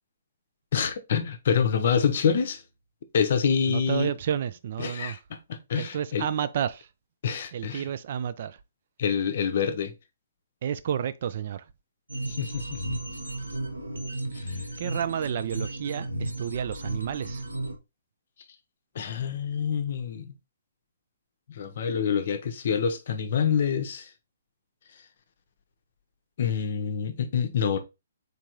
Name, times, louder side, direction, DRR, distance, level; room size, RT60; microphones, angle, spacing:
voice 1, 0.7-2.6 3.1-4.1 4.8-6.3 7.2-7.9 9.0-9.9 12.3-12.8 14.3-14.6 18.9-20.3 21.5-24.1 26.4-27.8, left 7 dB, 50° left, 0.6 m, -26 dB
voice 2, 3.7-5.2 5.8-6.9 7.5-8.6 10.6-11.7 14.8-17.4, right 9 dB, 45° right, 0.3 m, -31 dB
sound 1, 12.1-17.8, right 1 dB, 75° right, 0.7 m, -34 dB
3.9 x 3.4 x 2.9 m
figure-of-eight pair, 125°, 0 cm